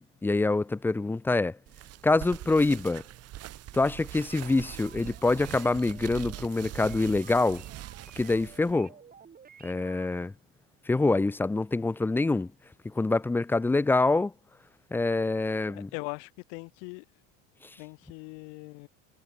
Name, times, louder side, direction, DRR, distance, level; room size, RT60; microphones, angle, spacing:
voice 1, 0.0-1.6 2.0-3.0 3.7-7.6 8.2-8.9 9.6-10.3 10.9-12.5 12.8-14.3 14.9-15.9, left 3 dB, 5° left, 0.3 m, -25 dB
sound 1, 1.7-8.7, right 15 dB, 40° right, 0.7 m, -43 dB
sound 2, 4.3-10.2, right 7 dB, 25° right, 1.4 m, -54 dB
voice 2, 15.7-17.0 17.8-18.9, left 40 dB or more, 80° left, 1.9 m, -40 dB
supercardioid pair, 120°, 38 cm